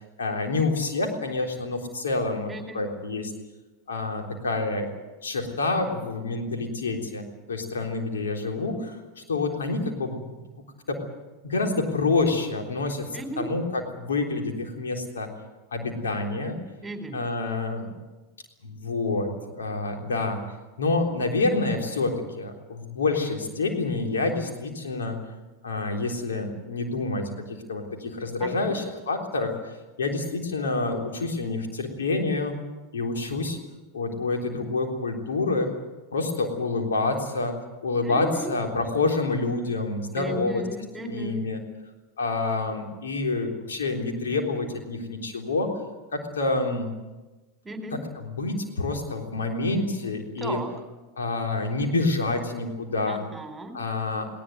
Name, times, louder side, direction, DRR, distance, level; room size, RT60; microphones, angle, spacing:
voice 1, 0.2-3.3 3.9-4.9 5.2-10.4 10.9-11.0 11.4-15.3 15.7-16.6 17.1-17.9 18.6-20.4 20.8-25.2 25.6-29.5 30.0-32.5 32.9-33.6 33.9-35.7 36.1-40.6 41.0-41.6 42.2-45.7 46.1-46.9 47.9-50.6 51.2-53.2 53.7-54.3, left 3 dB, 80° left, 3 dB, 3.7 m, -27 dB
voice 2, 2.5-2.8 13.1-13.5 16.8-17.2 28.4-28.7 38.1-38.5 40.1-41.4 47.6-48.0 50.4-50.7 53.1-53.8, right 1 dB, 10° right, 6 dB, 4.0 m, -35 dB
20.0 x 18.5 x 9.4 m, 1.2 s
hypercardioid pair, 90°, 0 cm